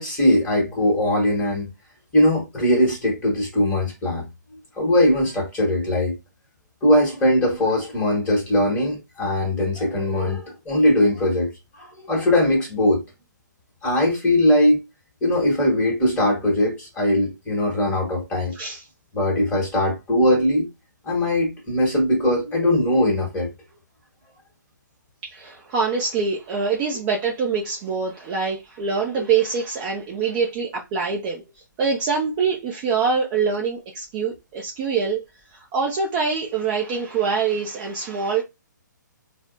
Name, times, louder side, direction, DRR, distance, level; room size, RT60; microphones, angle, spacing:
voice 1, 0.0-1.7 2.1-4.3 4.7-6.1 6.8-13.0 13.8-14.8 15.2-18.6 19.1-20.7 21.0-23.5, left 1 dB, 10° left, 1.3 m, -20 dB
voice 2, 25.2-31.4 31.8-35.2 35.5-38.4, right 5 dB, 20° right, 0.4 m, -24 dB
4.0 x 2.0 x 2.5 m
figure-of-eight pair, 130°, 10 cm